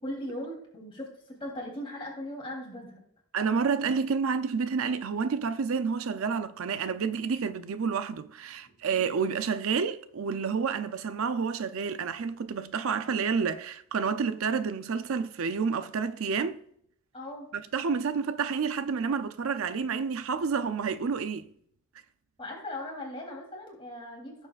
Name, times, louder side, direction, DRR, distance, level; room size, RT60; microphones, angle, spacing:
voice 1, 0.0-3.0 17.1-17.5 22.4-24.5, left 1 dB, 25° left, 3.1 m, -39 dB
voice 2, 3.3-16.6 17.5-21.5, right 5 dB, 80° right, 0.5 m, -29 dB
16.0 x 7.1 x 2.4 m
head